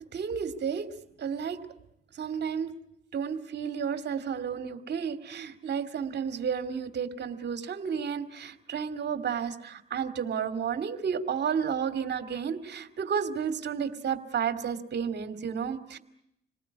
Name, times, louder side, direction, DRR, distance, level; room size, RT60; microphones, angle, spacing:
voice 1, 0.1-0.9 1.2-1.6 2.1-2.7 3.1-16.0, right 7 dB, 60° right, 10 dB, 2.6 m, -32 dB
28.0 x 19.5 x 9.7 m, 0.79 s
cardioid pair, 90°, 20 cm